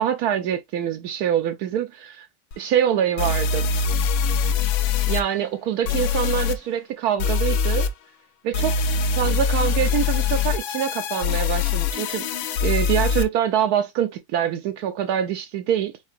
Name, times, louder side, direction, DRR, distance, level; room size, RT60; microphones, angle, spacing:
voice 1, 0.0-2.3 2.6-3.7 5.1-7.9 8.4-8.8 9.2-12.2 12.6-15.9, right 9 dB, 80° right, 0.8 m, -24 dB
sound 1, 2.5-2.6 3.2-5.2 5.8-6.5 7.2-7.9 8.5-13.2, left 6 dB, 80° left, 1.5 m, -23 dB
4.8 x 4.4 x 2.5 m
omnidirectional pair, 2.2 m